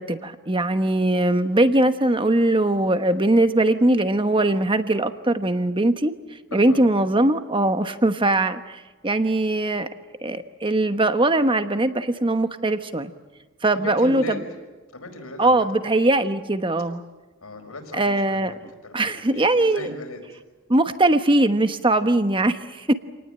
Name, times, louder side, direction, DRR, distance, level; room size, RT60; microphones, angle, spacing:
voice 1, 0.0-6.1 6.5-9.9 10.2-13.1 13.6-14.2 15.4-17.0 18.0-18.5 18.9-19.9 20.7-22.9, right 2 dB, 25° right, 9 dB, 1.2 m, -21 dB
voice 2, 6.5-7.1 13.7-14.4 14.9-15.7 17.4-18.5 18.8-20.4, left 2 dB, 85° left, 5 dB, 5.2 m, -37 dB
28.0 x 19.0 x 8.9 m, 1.3 s
head